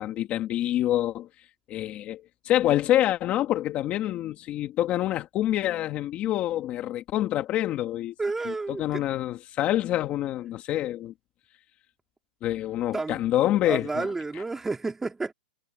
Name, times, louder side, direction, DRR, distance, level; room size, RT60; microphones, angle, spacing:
voice 1, 0.0-8.1 8.5-11.1 12.4-14.1, left 13 dB, 25° left, 2.2 m, -27 dB
voice 2, 8.2-9.0 12.9-13.3 13.6-15.3, right 3 dB, 5° right, 3.2 m, -31 dB
hypercardioid pair, 160°, 6 cm